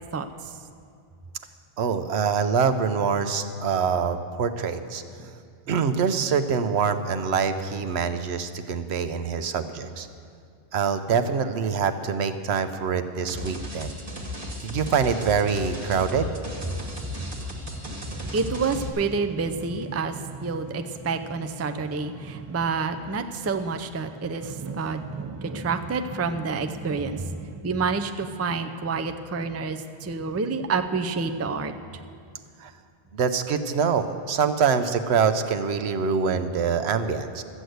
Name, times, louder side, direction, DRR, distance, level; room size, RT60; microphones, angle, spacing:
voice 1, 1.8-5.0 5.7-10.1 10.7-14.0 14.6-16.3 32.6-32.7 33.1-37.4, right 6 dB, 80° right, 10 dB, 1.0 m, -25 dB
sound 1, 13.3-18.9, left 1 dB, 55° right, 1.6 m, -35 dB
voice 2, 17.8-31.7, right 4 dB, 25° right, 8 dB, 0.3 m, -28 dB
14.0 x 8.2 x 7.8 m, 2.3 s
omnidirectional pair, 1.1 m